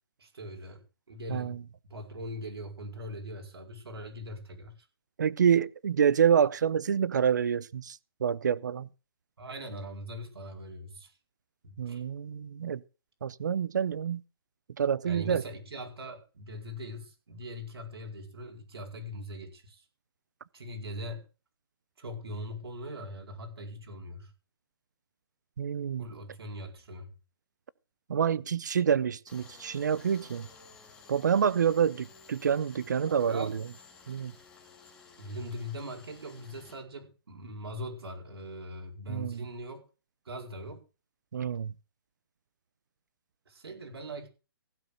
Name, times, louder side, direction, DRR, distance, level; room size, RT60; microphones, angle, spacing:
voice 1, 0.2-1.6 1.9-4.7 9.4-11.1 11.6-12.0 15.0-19.8 20.5-21.3 22.0-24.3 26.0-27.1 33.3-33.6 35.2-39.8 40.2-40.8 43.5-44.3, equal, 90° right, 4.6 m, -41 dB
voice 2, 1.3-1.6 5.2-8.9 11.8-12.8 13.2-14.2 14.8-15.4 25.6-26.0 28.1-30.5 31.1-33.5 34.1-34.3 39.1-39.4 41.3-41.7, right 8 dB, 50° right, 0.7 m, -27 dB
Tools, 29.3-36.8, left 4 dB, 5° left, 2.2 m, -54 dB
15.5 x 6.8 x 6.7 m
hypercardioid pair, 175°, 13 cm